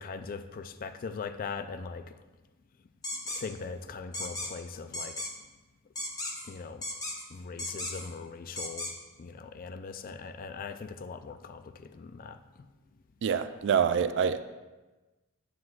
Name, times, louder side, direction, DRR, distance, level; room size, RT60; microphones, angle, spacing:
voice 1, 0.0-2.0 3.3-5.2 6.5-6.8 7.3-8.9 9.2-12.4, left 5 dB, 40° left, 10 dB, 0.4 m, -40 dB
sound 1, 3.0-3.4 4.1-4.5 4.9-5.3 6.0-6.5 6.8-7.2 7.6-8.1 8.6-8.9, left 1 dB, 15° left, 0.9 m, -35 dB
voice 2, 13.2-14.4, right 7 dB, 55° right, 11 dB, 0.3 m, -26 dB
9.5 x 7.7 x 2.4 m, 1.2 s
head